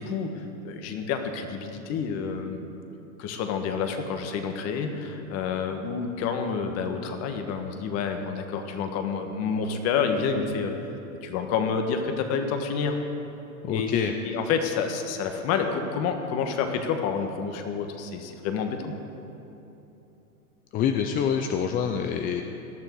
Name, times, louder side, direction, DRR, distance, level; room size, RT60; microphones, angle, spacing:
voice 1, 0.0-2.8 3.2-10.9 11.2-13.0 13.7-18.9, left 6 dB, 35° left, 5 dB, 1.6 m, -29 dB
voice 2, 13.6-14.1 20.7-22.4, left 8 dB, 20° left, 5 dB, 0.5 m, -26 dB
18.5 x 12.5 x 4.7 m, 3.0 s
hypercardioid pair, 120°, 43 cm